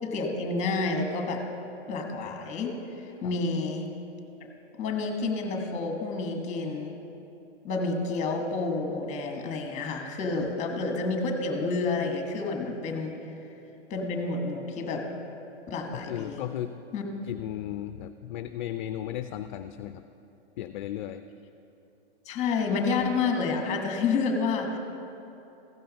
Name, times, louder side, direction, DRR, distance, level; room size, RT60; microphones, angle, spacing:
voice 1, 0.0-1.4 1.9-3.9 4.7-6.9 7.6-13.1 13.9-15.0 15.7-16.4 16.9-17.0 22.3-24.8, left 3 dB, 20° left, 3 dB, 1.3 m, -29 dB
voice 2, 15.9-16.7 17.2-20.0 20.6-21.2, left 12 dB, 50° left, 10 dB, 0.4 m, -35 dB
15.0 x 5.5 x 5.3 m, 2.9 s
hypercardioid pair, 140°, 33 cm